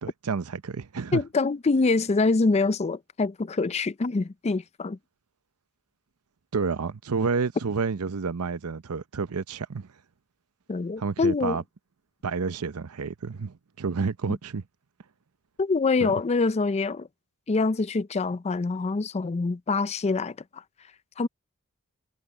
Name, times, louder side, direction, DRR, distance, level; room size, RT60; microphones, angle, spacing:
voice 1, 0.0-1.2 6.5-9.9 11.0-11.6 12.2-14.6 16.0-16.1, right 5 dB, 90° right, 0.7 m, -29 dB
voice 2, 1.1-5.0 10.7-11.6 15.6-17.1 17.5-20.6 21.2-21.3, left 3 dB, 30° left, 0.4 m, -25 dB
head